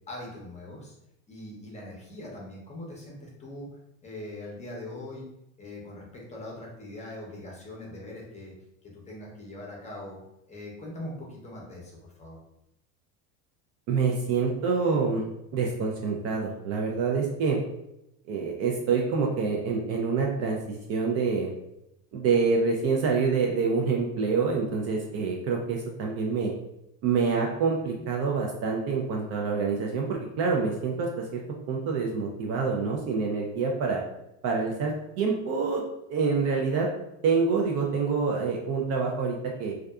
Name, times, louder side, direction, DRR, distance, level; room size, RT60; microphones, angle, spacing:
voice 1, 0.1-0.9 1.3-3.7 4.0-5.3 5.6-8.5 8.9-10.2 10.5-12.4, left 1 dB, 20° left, -3 dB, 0.7 m, -41 dB
voice 2, 13.9-15.2 15.5-17.6 18.3-21.5 22.1-26.5 27.0-31.4 31.7-34.0 34.4-35.8 36.1-36.9 37.2-39.7, right 5 dB, 40° right, 0 dB, 0.4 m, -26 dB
2.5 x 2.3 x 2.3 m, 0.85 s
supercardioid pair, 115°, 39 cm